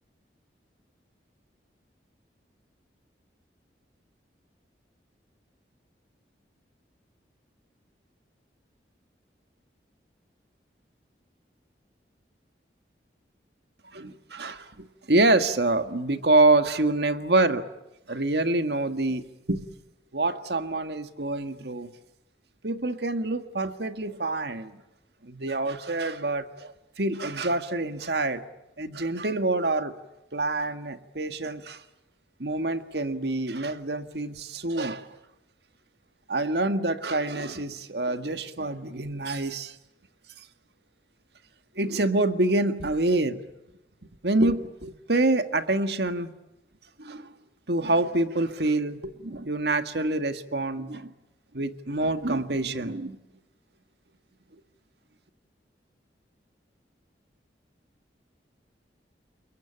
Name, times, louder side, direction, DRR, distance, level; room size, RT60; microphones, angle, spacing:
voice 1, 13.9-17.7 18.1-19.2 19.5-19.6 20.1-21.9 22.6-24.8 25.2-28.4 28.8-29.9 30.3-31.8 32.4-35.1 36.3-39.8 41.8-43.4 44.2-46.3 47.0-47.3 47.7-51.1 51.5-53.2, right 2 dB, 65° right, 9 dB, 1.7 m, -26 dB
28.5 x 22.5 x 8.8 m, 0.94 s
head